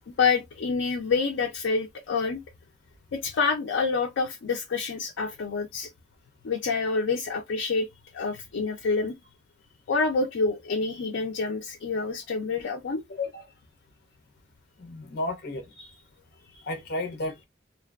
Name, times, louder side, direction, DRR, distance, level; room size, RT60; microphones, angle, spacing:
voice 1, 0.1-2.4 3.1-5.9 6.4-7.9 8.1-9.2 9.9-13.0 15.8-15.9, left 4 dB, 80° left, 0.4 m, -27 dB
voice 2, 13.1-13.5 14.8-15.7 16.6-17.4, left 2 dB, 55° left, 0.7 m, -33 dB
2.5 x 2.2 x 2.3 m
head